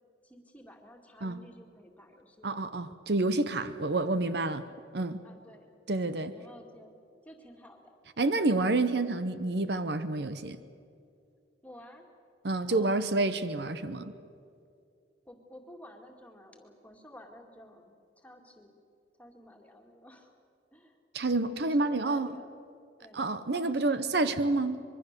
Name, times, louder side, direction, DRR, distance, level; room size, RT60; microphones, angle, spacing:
voice 1, 0.2-2.6 5.2-5.8 6.3-8.0 8.2-8.4 11.6-12.1 12.7-13.0 15.3-18.8 19.2-20.3 20.7-21.0 21.6-22.5 23.0-23.3 23.5-24.8, left 1 dB, 10° left, 2 dB, 2.3 m, -52 dB
voice 2, 2.4-4.6 4.9-5.2 5.9-6.3 8.2-10.6 12.4-14.1 21.1-22.4 23.1-24.8, right 2 dB, 60° right, 12 dB, 0.8 m, -28 dB
25.0 x 22.5 x 6.8 m, 2.4 s
head